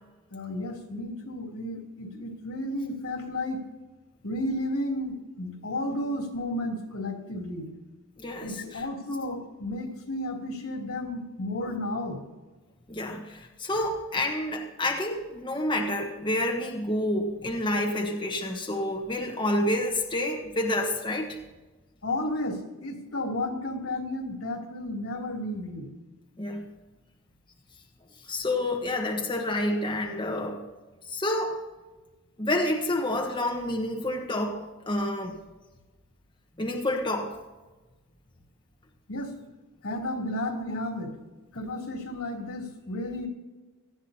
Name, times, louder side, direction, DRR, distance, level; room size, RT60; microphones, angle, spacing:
voice 1, 0.3-3.6 4.2-7.7 8.4-12.2 22.0-25.9 39.1-39.3 39.8-41.2 41.5-43.3, left 1 dB, 85° left, 0 dB, 3.1 m, -32 dB
voice 2, 8.2-8.8 12.9-21.4 26.4-26.7 28.3-30.6 31.1-31.5 32.4-35.4 36.6-37.3, left 1 dB, 20° left, 1 dB, 1.2 m, -29 dB
18.5 x 13.5 x 2.8 m, 1.2 s
head